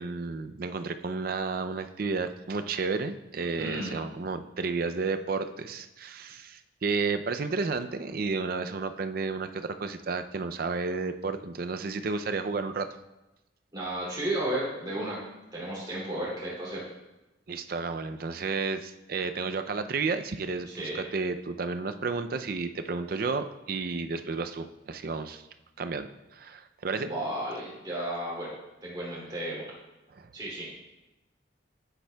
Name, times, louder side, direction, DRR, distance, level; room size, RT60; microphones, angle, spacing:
voice 1, 0.0-12.9 17.5-20.7 20.9-25.4 25.8-27.1 30.2-30.3, right 4 dB, 50° right, 9 dB, 0.4 m, -32 dB
voice 2, 3.6-3.9 6.3-6.4 13.7-15.2 15.5-16.8 20.7-21.0 26.9-28.5 28.8-29.8 30.3-30.7, right 1 dB, 25° right, -7 dB, 2.5 m, -33 dB
9.9 x 9.1 x 2.3 m, 0.99 s
head